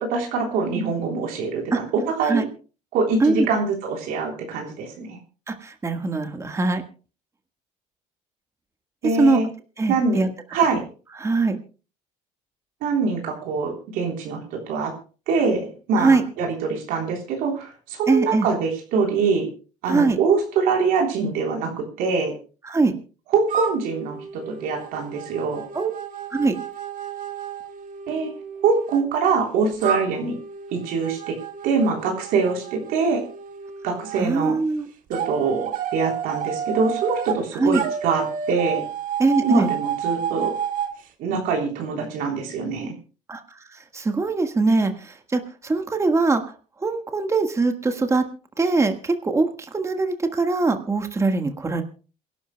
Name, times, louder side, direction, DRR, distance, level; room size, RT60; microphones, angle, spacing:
voice 1, 0.0-2.4 2.9-5.2 9.0-9.5 9.9-10.2 10.5-10.8 12.8-14.9 15.3-19.5 19.8-22.3 23.3-24.2 24.5-25.6 28.1-28.3 28.6-30.4 30.7-31.3 31.6-33.2 33.8-34.6 35.1-38.8 39.4-40.5 41.2-42.9, right 4 dB, 80° right, 1 dB, 3.6 m, -24 dB
voice 2, 5.5-6.8 9.2-9.4 9.8-10.3 11.2-11.6 16.0-16.2 18.1-18.5 19.9-20.2 22.7-22.9 25.7-25.9 26.3-26.5 34.2-34.9 37.6-37.8 39.2-39.7 43.3-43.4 43.9-46.4 46.8-48.3 48.6-51.8, right 3 dB, 20° right, 6 dB, 1.5 m, -21 dB
sound 1, 23.5-29.0 29.8-34.2 35.1-37.4 37.7-40.9, right 8 dB, 65° right, 1.9 m, -31 dB
28.0 x 12.0 x 2.2 m, 0.35 s
cardioid pair, 105°, 15 cm